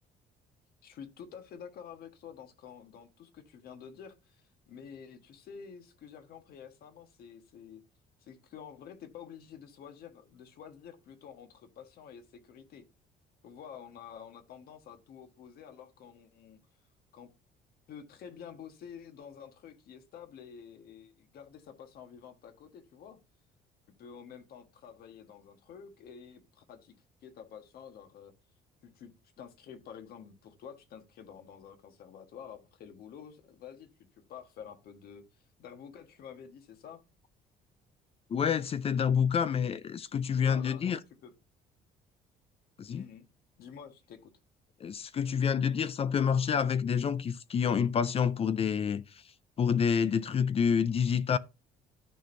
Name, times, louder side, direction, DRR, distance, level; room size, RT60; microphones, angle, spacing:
voice 1, 0.8-7.8 8.2-12.9 13.4-16.6 17.1-17.3 17.9-23.2 24.0-26.9 27.2-28.3 28.8-29.1 29.4-33.9 34.3-37.0 40.4-41.3 42.9-43.3 43.6-44.3, left 7 dB, 65° left, 1.4 m, -49 dB
voice 2, 38.3-41.0 42.8-43.0 44.8-49.2 49.6-51.4, left 7 dB, 35° left, 0.5 m, -28 dB
13.0 x 4.4 x 2.6 m
cardioid pair, 110°, 17 cm